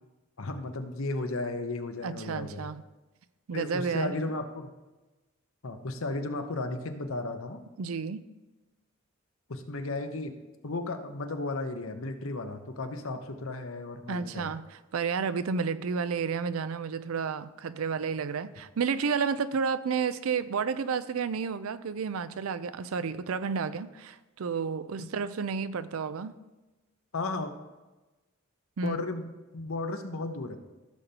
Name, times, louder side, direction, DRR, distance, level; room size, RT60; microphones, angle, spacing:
voice 1, 0.4-2.7 3.5-4.7 5.6-7.6 9.5-10.3 10.6-14.5 25.0-25.1 27.1-27.5 28.8-30.6, left 2 dB, 75° left, 7 dB, 0.9 m, -34 dB
voice 2, 2.0-2.8 3.5-4.1 7.8-8.2 14.1-26.4 28.8-29.0, right 5 dB, 80° right, 14 dB, 0.4 m, -31 dB
15.0 x 6.8 x 2.9 m, 1.1 s
head